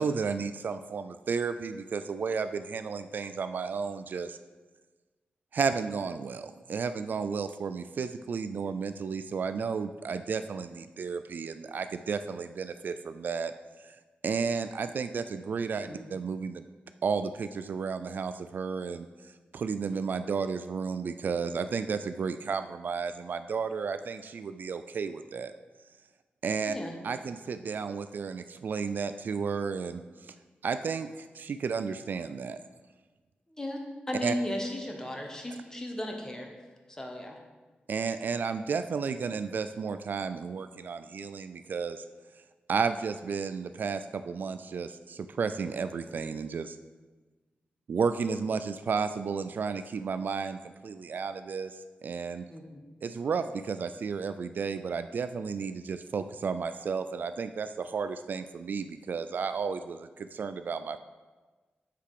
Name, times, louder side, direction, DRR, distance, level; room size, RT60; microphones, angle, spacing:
voice 1, 0.0-4.4 5.5-13.5 13.8-13.9 14.2-16.6 17.0-19.1 19.5-25.5 26.4-26.7 27.0-30.3 30.6-32.6 34.2-34.3 37.9-42.0 42.7-46.8 47.9-52.5 53.0-61.0, right 5 dB, 60° right, 10 dB, 0.3 m, -33 dB
voice 2, 33.5-36.5 36.9-37.4 52.5-52.8, left 1 dB, 15° left, 2 dB, 1.1 m, -35 dB
7.6 x 6.7 x 4.9 m, 1.3 s
wide cardioid pair, 155°, 4 cm